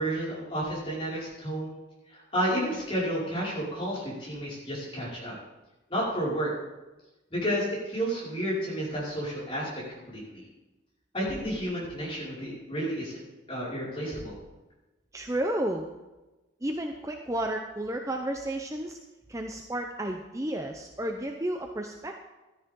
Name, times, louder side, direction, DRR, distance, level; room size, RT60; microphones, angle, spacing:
voice 1, 0.0-1.7 2.1-5.4 5.9-6.5 7.3-10.4 11.1-13.2 13.5-14.4, equal, 30° left, -7 dB, 5.4 m, -31 dB
voice 2, 15.1-15.9 16.6-19.0 19.3-22.2, right 1 dB, 15° right, 3 dB, 0.6 m, -32 dB
13.0 x 13.0 x 3.8 m, 1.1 s
head